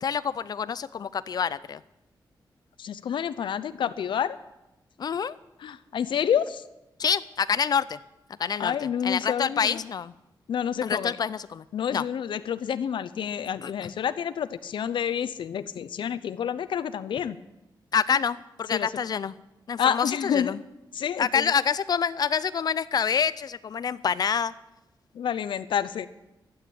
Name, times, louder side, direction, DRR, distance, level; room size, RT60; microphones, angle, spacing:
voice 1, 0.0-1.8 5.0-5.4 7.0-8.0 8.4-10.1 10.8-11.6 11.9-12.0 13.6-13.9 17.9-19.4 19.7-20.6 21.2-24.5, left 7 dB, 55° left, 17 dB, 0.4 m, -27 dB
voice 2, 2.8-4.4 5.6-6.6 8.6-9.8 10.5-11.2 11.7-17.4 18.7-18.9 19.8-20.5 20.9-21.4 25.2-26.1, left 8 dB, 90° left, 14 dB, 0.7 m, -28 dB
12.0 x 8.9 x 10.0 m, 0.95 s
wide cardioid pair, 140°, 8 cm